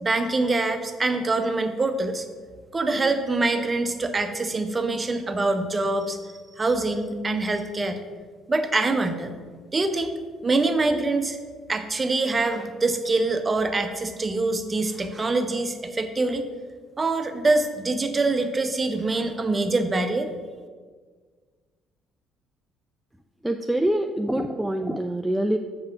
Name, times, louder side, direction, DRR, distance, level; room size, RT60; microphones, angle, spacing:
voice 1, 0.0-2.2 2.7-6.3 6.6-8.0 8.5-9.3 9.7-10.1 10.4-11.4 11.7-16.4 17.0-20.3, right 3 dB, 25° right, 8 dB, 0.8 m, -24 dB
voice 2, 23.4-25.6, right 1 dB, 5° right, 4 dB, 0.4 m, -25 dB
7.5 x 4.8 x 5.9 m, 1.6 s
figure-of-eight pair, 50°, 0 cm